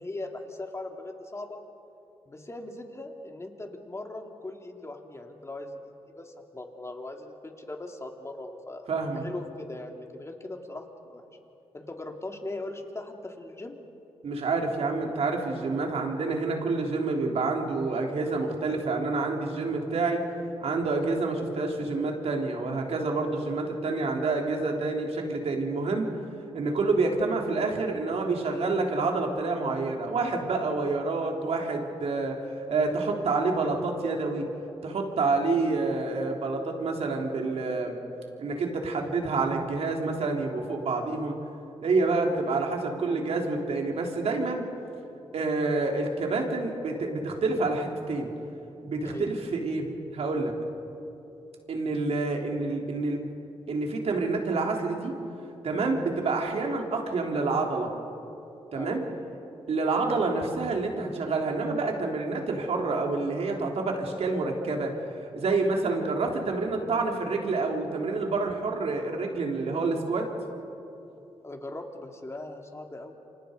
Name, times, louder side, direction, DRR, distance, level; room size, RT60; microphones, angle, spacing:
voice 1, 0.0-1.6 2.3-5.8 6.1-8.9 9.1-11.2 11.7-13.8 49.0-49.3 58.7-58.9 71.4-73.1, left 2 dB, 25° left, 3 dB, 3.0 m, -39 dB
voice 2, 8.9-9.2 14.2-20.2 20.6-26.1 26.5-32.4 32.7-34.5 34.8-38.0 38.4-41.3 41.8-44.6 45.3-48.3 48.8-50.5 51.7-53.2 53.7-55.1 55.6-57.9 58.7-59.0 59.7-64.9 65.3-70.3, right 3 dB, 65° right, 1 dB, 3.8 m, -28 dB
28.5 x 25.0 x 5.3 m, 2.8 s
cardioid pair, 70°, 11 cm